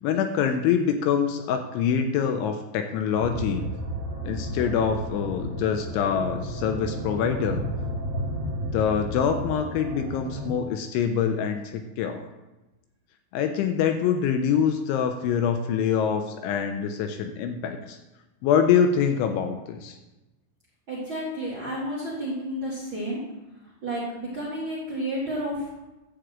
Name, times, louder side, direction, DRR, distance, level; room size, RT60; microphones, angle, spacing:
voice 1, 0.0-3.6 4.2-7.6 8.7-12.3 13.3-18.0 18.4-20.0, left 7 dB, 80° left, 6 dB, 2.9 m, -25 dB
sound 1, 3.1-10.5, right 1 dB, 60° right, 1.2 m, -32 dB
voice 2, 20.9-23.2 23.8-25.7, equal, 40° right, -6 dB, 1.9 m, -31 dB
11.5 x 4.9 x 7.8 m, 1.0 s
omnidirectional pair, 5.7 m